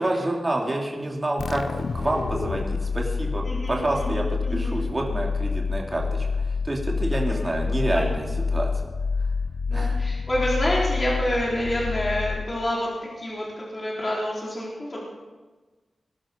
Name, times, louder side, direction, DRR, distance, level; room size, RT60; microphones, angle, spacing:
voice 1, 0.0-4.3 4.5-8.7 9.7-10.0, right 1 dB, 25° right, -1 dB, 3.0 m, -28 dB
sound 1, 1.4-12.9, left 4 dB, 65° left, 0.6 m, -27 dB
voice 2, 3.5-4.8 7.8-8.1 9.7-12.9 13.2-15.0, left 1 dB, 35° left, -5 dB, 4.2 m, -28 dB
20.5 x 11.5 x 5.3 m, 1.3 s
wide cardioid pair, 115°, 0 cm